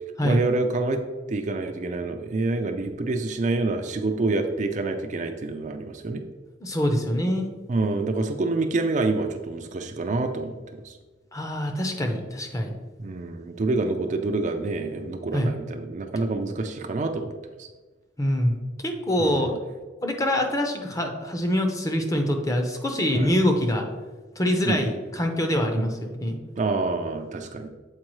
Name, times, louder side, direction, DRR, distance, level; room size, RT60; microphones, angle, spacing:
voice 1, 0.2-1.0 1.3-6.2 7.7-11.0 13.0-17.3 17.6-17.7 19.2-19.6 23.1-23.3 24.7-24.9 25.7-25.9 26.6-27.7, right 3 dB, 40° right, 5 dB, 0.4 m, -27 dB
voice 2, 6.6-7.5 11.3-12.8 15.3-15.5 18.2-18.5 18.8-19.5 20.0-23.9 24.4-26.4, equal, 15° left, 4 dB, 0.6 m, -24 dB
7.5 x 4.6 x 3.0 m, 1.3 s
head